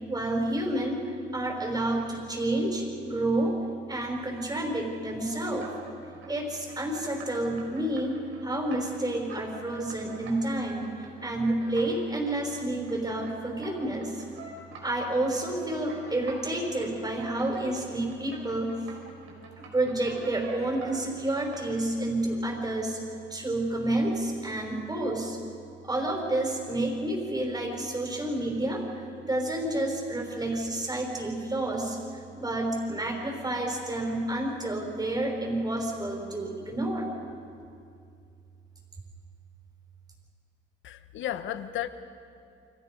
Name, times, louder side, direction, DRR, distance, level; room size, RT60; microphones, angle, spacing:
voice 1, 0.1-3.6 3.9-5.7 6.3-10.9 11.2-14.2 14.8-18.9 19.6-23.0 23.3-25.4 25.8-37.1, right 1 dB, 20° right, 1 dB, 5.5 m, -29 dB
sound 1, 5.1-6.4 6.6-21.8, right 4 dB, 80° right, 5.8 m, -47 dB
voice 2, 40.8-41.9, left 12 dB, 75° left, 10 dB, 1.3 m, -33 dB
30.0 x 23.5 x 5.4 m, 2.5 s
cardioid pair, 90°, 20 cm